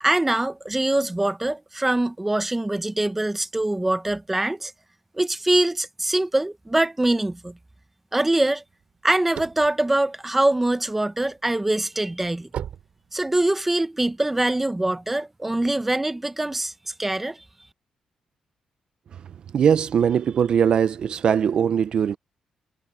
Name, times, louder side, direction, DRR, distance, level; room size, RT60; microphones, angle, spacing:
voice 1, 0.0-4.7 5.1-7.5 8.1-8.6 9.0-12.5 13.1-17.4, right 1 dB, 10° right, 0.7 m, -23 dB
sound 1, 8.8-11.0 11.5-13.7, right 9 dB, 70° right, 2.5 m, -37 dB
voice 2, 19.5-22.2, right 8 dB, 45° right, 0.4 m, -20 dB
wide cardioid pair, 175°, 2 cm